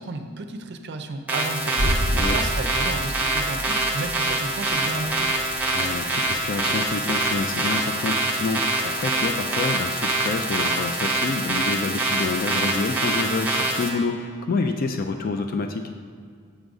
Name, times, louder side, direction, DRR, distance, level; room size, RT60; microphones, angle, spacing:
voice 1, 0.0-5.3, right 3 dB, 55° right, 7 dB, 0.5 m, -33 dB
sound 1, 1.3-13.9, right 2 dB, 10° right, 0.8 m, -25 dB
sound 2, 1.8-7.5 7.8-7.9, equal, 85° left, 0.8 m, -30 dB
voice 2, 5.7-15.9, left 3 dB, 45° left, 5 dB, 0.3 m, -28 dB
7.2 x 3.9 x 4.8 m, 2.1 s
head